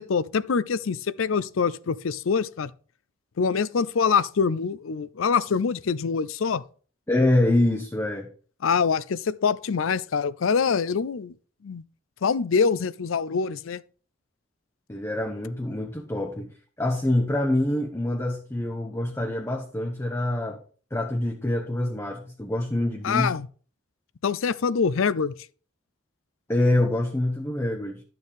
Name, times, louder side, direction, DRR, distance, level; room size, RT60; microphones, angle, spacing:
voice 1, 0.0-2.7 3.4-6.6 8.6-11.3 11.6-11.8 12.2-13.8 23.0-23.5 24.2-25.3, left 5 dB, 90° left, 0.5 m, -24 dB
voice 2, 7.1-8.3 14.9-20.6 20.9-23.4 26.5-28.0, left 1 dB, 15° left, 0.8 m, -25 dB
11.5 x 6.7 x 3.5 m
head